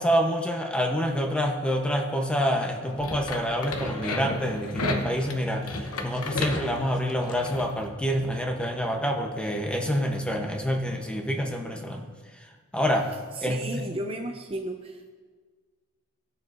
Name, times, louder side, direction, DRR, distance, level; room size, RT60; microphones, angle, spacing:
voice 1, 0.0-12.1 12.7-13.1 13.4-13.6, equal, 5° left, 2 dB, 0.8 m, -27 dB
sound 1, 2.9-7.7, left 2 dB, 85° left, 0.9 m, -32 dB
voice 2, 13.3-15.1, right 1 dB, 25° right, 3 dB, 0.6 m, -34 dB
19.0 x 6.7 x 2.6 m, 1.5 s
head